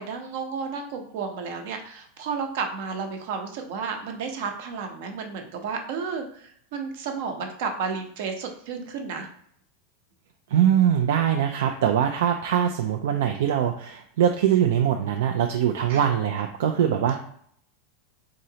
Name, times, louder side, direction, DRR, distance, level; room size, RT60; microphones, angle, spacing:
voice 1, 0.0-9.3 15.9-16.0, right 5 dB, 65° right, 4 dB, 0.8 m, -32 dB
voice 2, 10.5-17.2, right 9 dB, 80° right, 5 dB, 0.3 m, -22 dB
3.8 x 3.1 x 2.8 m, 0.64 s
supercardioid pair, 150°, 0 cm